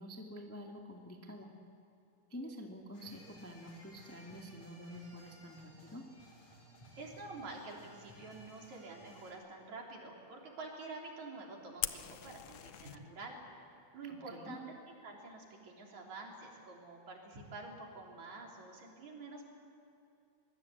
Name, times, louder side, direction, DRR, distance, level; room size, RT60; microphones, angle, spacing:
voice 1, 0.0-1.5 2.3-6.1 14.1-14.6, equal, 5° left, 1 dB, 1.4 m, -48 dB
sound 1, 2.9-9.3, equal, 60° left, 6.0 m, -58 dB
voice 2, 7.0-13.4 13.9-14.6 15.0-19.5, right 3 dB, 65° right, -1 dB, 4.8 m, -48 dB
Fire, 11.8-13.0, left 12 dB, 90° left, 1.2 m, -40 dB
25.0 x 21.0 x 8.5 m, 2.7 s
omnidirectional pair, 3.5 m